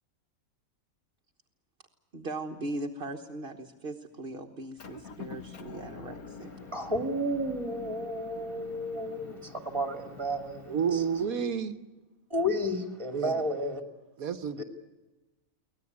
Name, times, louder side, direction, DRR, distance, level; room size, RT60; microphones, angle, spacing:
voice 1, 2.1-6.5, right 2 dB, 45° right, 1.5 m, -39 dB
Motor vehicle (road) / Engine, 4.8-11.2, left 5 dB, 85° left, 2.0 m, -47 dB
voice 2, 6.7-11.0 12.3-13.8 14.6-14.7, equal, 20° right, 2.5 m, -32 dB
voice 3, 10.7-11.8 13.1-13.5 14.2-14.6, right 7 dB, 80° right, 1.4 m, -30 dB
24.0 x 18.5 x 9.5 m
omnidirectional pair, 1.5 m